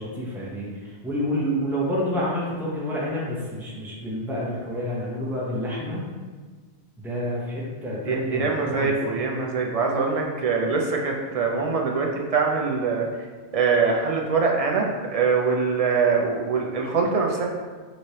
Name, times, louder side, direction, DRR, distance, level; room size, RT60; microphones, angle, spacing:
voice 1, 0.0-6.1 7.0-8.9, equal, ahead, -6 dB, 0.7 m, -28 dB
voice 2, 8.1-13.1 13.5-17.4, right 5 dB, 55° right, 0 dB, 0.4 m, -23 dB
5.0 x 3.1 x 2.8 m, 1.4 s
omnidirectional pair, 1.1 m